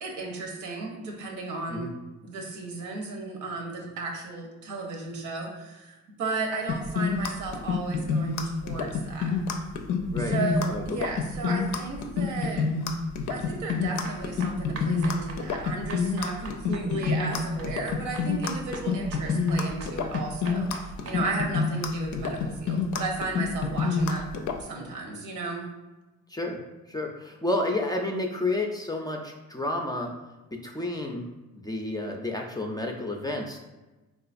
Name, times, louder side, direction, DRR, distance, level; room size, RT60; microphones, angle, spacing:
voice 1, 0.0-1.9 2.2-9.3 10.2-12.7 13.3-24.2 24.6-25.7, right 3 dB, 80° right, 0 dB, 0.8 m, -34 dB
sound 1, 6.7-24.6, left 4 dB, 75° left, 0.5 m, -27 dB
sound 2, 13.7-21.2, right 3 dB, 50° right, 0.6 m, -43 dB
voice 2, 26.9-30.1 30.6-31.2 31.5-33.6, left 2 dB, 15° left, 2 dB, 0.4 m, -30 dB
3.9 x 2.4 x 2.5 m, 1.1 s
cardioid pair, 90°, 30 cm